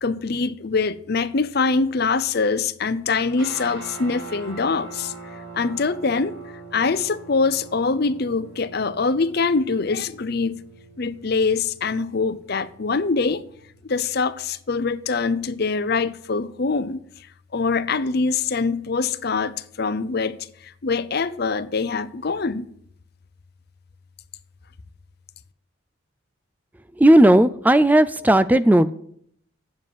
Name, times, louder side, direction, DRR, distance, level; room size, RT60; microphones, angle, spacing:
voice 1, 0.0-5.1 5.5-6.3 6.7-10.6 11.0-13.4 13.8-17.0 17.5-22.7, left 4 dB, 50° left, 0.6 m, -24 dB
sound 1, 3.3-13.8, right 3 dB, 65° right, 5.3 m, -42 dB
voice 2, 27.0-28.9, right 1 dB, 10° right, 0.3 m, -15 dB
8.5 x 7.5 x 8.9 m
head